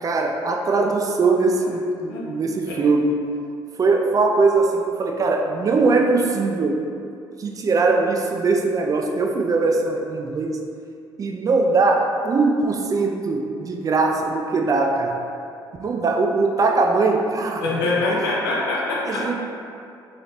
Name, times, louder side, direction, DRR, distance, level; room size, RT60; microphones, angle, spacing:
voice 1, 0.0-3.2 3.8-6.8 7.4-10.6 11.2-15.2 15.8-17.6 18.1-18.2 19.1-19.3, right 3 dB, 30° right, 2 dB, 0.4 m, -21 dB
voice 2, 17.6-19.3, left 2 dB, 70° left, -4 dB, 0.7 m, -24 dB
3.8 x 3.2 x 2.8 m, 2.5 s
figure-of-eight pair, 45°, 12 cm